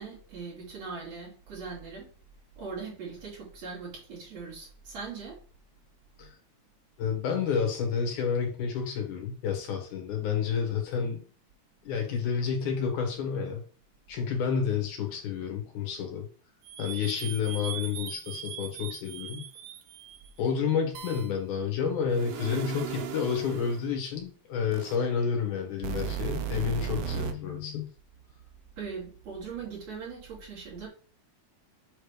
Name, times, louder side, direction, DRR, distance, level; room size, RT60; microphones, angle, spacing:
voice 1, 0.0-2.1 2.6-5.4 28.8-30.9, right 5 dB, 60° right, -5 dB, 3.7 m, -40 dB
voice 2, 7.0-11.2 11.8-13.6 14.1-16.3 16.8-19.4 20.4-27.9, left 6 dB, 80° left, 3 dB, 3.1 m, -30 dB
sound 1, 16.6-20.3 20.9-21.3 22.1-23.9 24.7-24.9 25.8-27.3, right 10 dB, 75° right, 1.4 m, -37 dB
7.3 x 3.3 x 5.0 m, 0.41 s
omnidirectional pair, 3.5 m